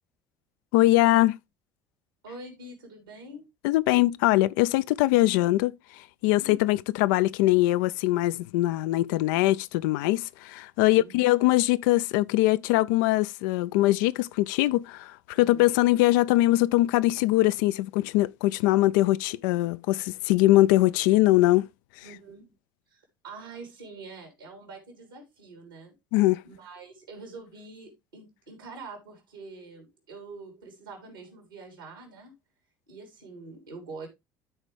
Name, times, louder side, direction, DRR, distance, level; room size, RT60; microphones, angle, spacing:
voice 1, 0.7-1.4 3.6-21.7 26.1-26.4, left 17 dB, 70° left, 0.4 m, -22 dB
voice 2, 2.2-3.4 6.3-6.7 10.8-11.1 15.3-15.7 22.0-22.5 22.9-25.9 26.4-32.3 32.9-34.1, right 3 dB, 85° right, 3.4 m, -45 dB
13.0 x 4.4 x 3.2 m
hypercardioid pair, 60°, 11 cm